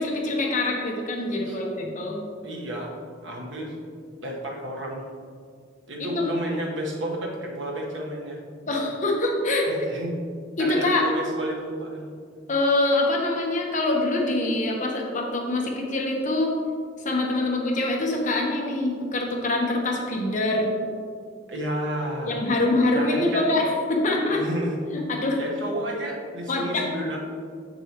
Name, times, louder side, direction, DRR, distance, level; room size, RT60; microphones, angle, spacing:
voice 1, 0.0-2.2 6.0-6.3 8.7-9.7 10.6-11.0 12.5-16.5 17.0-20.7 22.3-24.4 24.9-25.4 26.5-26.8, left 2 dB, 40° left, -1 dB, 1.1 m, -24 dB
voice 2, 2.4-3.0 3.2-3.7 4.2-5.0 5.9-8.4 9.7-10.1 10.6-12.1 21.5-22.4 22.9-23.5 24.3-24.8 25.3-27.2, right 1 dB, 85° right, -1 dB, 1.3 m, -31 dB
7.2 x 6.8 x 3.0 m, 2.1 s
head